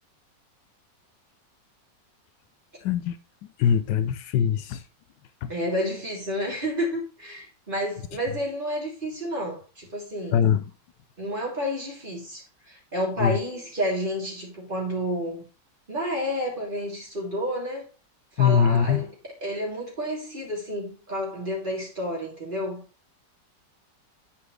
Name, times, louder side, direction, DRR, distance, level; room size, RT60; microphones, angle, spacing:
voice 1, 2.8-3.2 3.6-4.8 5.4-5.5 10.3-10.6 13.2-13.4 18.4-19.0, left 8 dB, 80° left, 1.2 m, -22 dB
voice 2, 5.5-10.4 11.2-15.4 15.9-17.9 18.4-19.1 19.4-22.8, equal, 25° right, 3.3 m, -30 dB
9.5 x 5.9 x 3.3 m
omnidirectional pair, 2.0 m